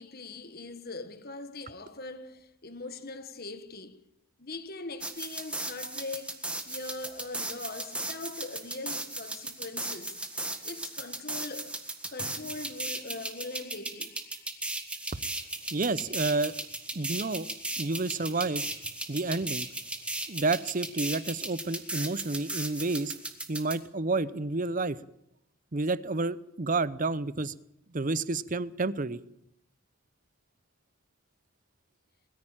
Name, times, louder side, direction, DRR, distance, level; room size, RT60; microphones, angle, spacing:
voice 1, 0.0-4.0 4.4-10.2 10.6-14.3, left 3 dB, 45° left, 1.5 m, -41 dB
sound 1, 5.0-23.8, right 2 dB, 5° right, 1.7 m, -36 dB
voice 2, 15.7-16.5 16.9-17.5 17.8-18.6 19.1-19.7 20.3-23.1 23.5-25.0 25.7-27.5 27.9-29.2, right 3 dB, 35° right, 0.7 m, -30 dB
21.5 x 14.5 x 8.9 m
head